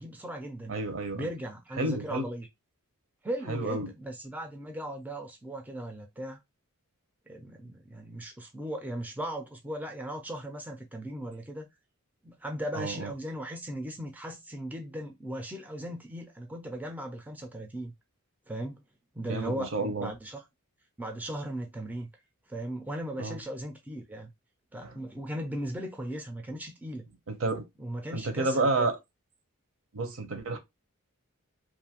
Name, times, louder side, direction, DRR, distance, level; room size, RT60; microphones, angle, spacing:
voice 1, 0.0-0.8 1.1-2.5 3.2-6.4 7.3-11.7 12.2-17.9 18.5-18.8 19.2-20.4 21.0-22.1 22.5-24.3 24.7-27.1 27.8-28.9 30.5-30.6, right 1 dB, 5° right, 0.4 m, -37 dB
voice 2, 0.7-1.3 1.8-2.2 3.5-3.9 12.7-13.1 19.3-20.1 23.2-23.4 24.8-24.9 27.3-27.6 28.1-29.0 29.9-30.6, right 2 dB, 65° right, 0.7 m, -30 dB
2.5 x 2.4 x 2.8 m
head